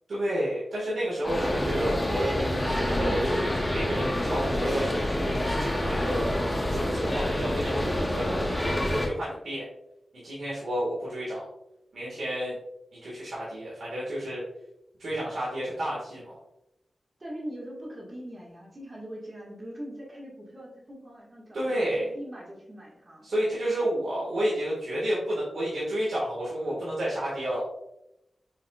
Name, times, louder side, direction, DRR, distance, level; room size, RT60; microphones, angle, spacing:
voice 1, 0.1-2.3 2.9-5.0 5.5-6.3 6.7-9.6 10.2-11.4 11.9-12.6 13.0-14.4 15.0-16.3 21.5-22.1 23.2-27.6, equal, 75° right, -8 dB, 1.6 m, -30 dB
sound 1, 1.2-9.1, left 1 dB, 15° left, 0.9 m, -27 dB
voice 2, 17.2-23.2, equal, 40° right, -4 dB, 1.6 m, -42 dB
5.6 x 3.5 x 2.3 m, 0.85 s
cardioid pair, 60°, 0 cm